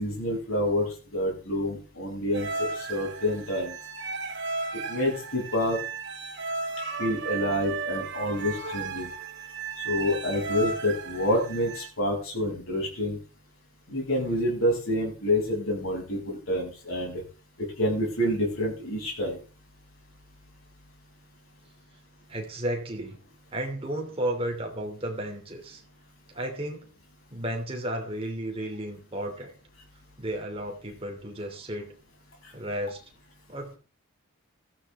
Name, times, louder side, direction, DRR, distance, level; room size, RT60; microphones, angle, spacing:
voice 1, 0.0-3.7 4.9-5.8 7.0-9.1 9.9-13.2 13.9-17.2 17.8-19.4, left 1 dB, 70° left, -1 dB, 6.9 m, -28 dB
sound 1, 2.3-11.9, right 4 dB, 55° right, 1.8 m, -35 dB
voice 2, 22.3-23.2 23.5-25.8 26.3-26.9 27.3-29.5 30.2-31.9 32.5-33.0 33.5-33.7, right 1 dB, 25° right, 1 dB, 2.7 m, -33 dB
16.5 x 13.5 x 3.6 m, 0.37 s
head